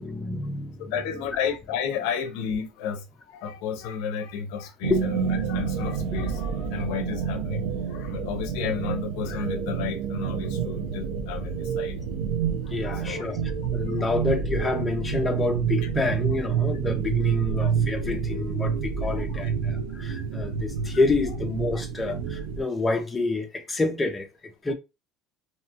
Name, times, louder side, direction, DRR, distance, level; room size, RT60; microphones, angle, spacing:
voice 1, 0.0-1.2 4.9-5.0 12.7-24.7, left 3 dB, 10° left, 0.5 m, -28 dB
voice 2, 0.8-12.0 12.6-13.2 13.9-14.0 17.6-17.7 19.4-19.5 20.3-20.4, left 7 dB, 65° left, 0.5 m, -32 dB
sound 1, 4.8-22.6, right 7 dB, 85° right, 0.5 m, -28 dB
2.7 x 2.2 x 2.8 m
cardioid pair, 155°, 0 cm